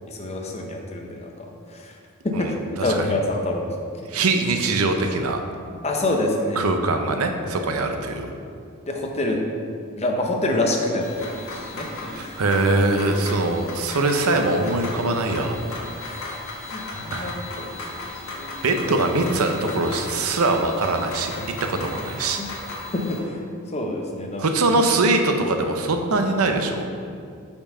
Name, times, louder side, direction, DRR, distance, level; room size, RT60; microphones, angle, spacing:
voice 1, 0.1-1.5 1.7-1.9 2.2-3.7 5.8-6.7 8.2-8.3 8.9-9.4 10.0-12.3 16.0-16.4 16.6-17.7 18.4-18.6 22.4-22.5 22.9-23.2 23.7-24.5, left 1 dB, 30° left, 1 dB, 0.7 m, -26 dB
voice 2, 2.8-3.1 4.1-5.4 6.6-8.2 12.1-15.9 17.1-17.3 18.6-21.3 21.6-22.4 24.4-26.9, right 2 dB, 75° right, 5 dB, 0.7 m, -22 dB
sound 1, 11.0-23.2, left 2 dB, 70° left, 1.4 m, -36 dB
5.8 x 4.4 x 5.4 m, 2.3 s
head